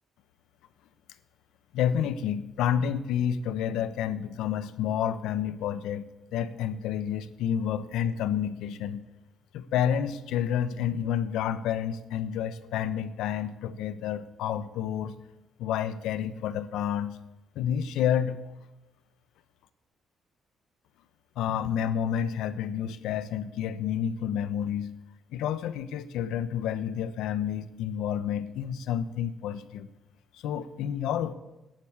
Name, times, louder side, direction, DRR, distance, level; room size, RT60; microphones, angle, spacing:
voice 1, 1.7-6.1 6.3-9.0 9.5-15.1 15.6-17.2 17.5-18.4 21.4-24.9 25.3-29.9 30.4-31.3, left 9 dB, 90° left, 13 dB, 0.9 m, -29 dB
13.0 x 11.0 x 8.1 m, 1.0 s
cardioid pair, 90°, 0 cm